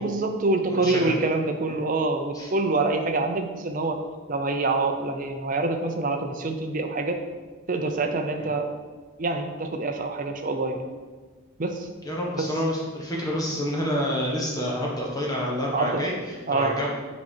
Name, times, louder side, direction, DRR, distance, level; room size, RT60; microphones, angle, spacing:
voice 1, 0.0-4.0 4.3-7.2 7.7-8.7 9.2-10.9 11.6-11.9 12.4-12.5 15.7-16.1 16.5-16.8, right 3 dB, 40° right, 5 dB, 0.6 m, -26 dB
voice 2, 0.7-1.1 2.3-2.5 8.4-8.5 12.0-16.1 16.5-16.9, equal, 15° left, -3 dB, 1.2 m, -28 dB
7.3 x 4.2 x 4.5 m, 1.4 s
head